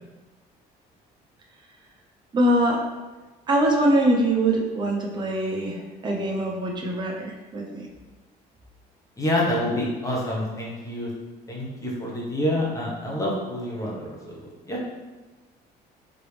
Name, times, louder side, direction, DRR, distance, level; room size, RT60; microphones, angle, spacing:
voice 1, 2.3-2.8 3.5-7.9, right 1 dB, 25° right, -1 dB, 0.7 m, -23 dB
voice 2, 9.2-11.1 11.5-14.8, left 1 dB, 20° left, -4 dB, 1.2 m, -27 dB
3.8 x 3.4 x 3.4 m, 1.2 s
cardioid pair, 110°, 17 cm